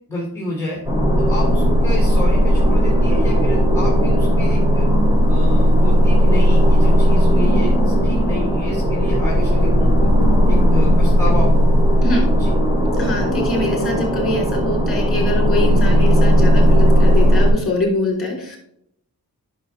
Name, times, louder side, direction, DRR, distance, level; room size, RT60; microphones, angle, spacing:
voice 1, 0.1-0.8 1.2-4.9 5.3-10.1 10.5-11.6 12.3-12.5, left 1 dB, 5° left, -4 dB, 2.4 m, -29 dB
sound 1, 0.8-17.5, equal, 10° right, 2.9 m, -15 dB
voice 2, 13.0-18.6, left 2 dB, 35° left, -1 dB, 3.5 m, -23 dB
10.0 x 6.0 x 3.3 m, 0.72 s
wide cardioid pair, 100°, 37 cm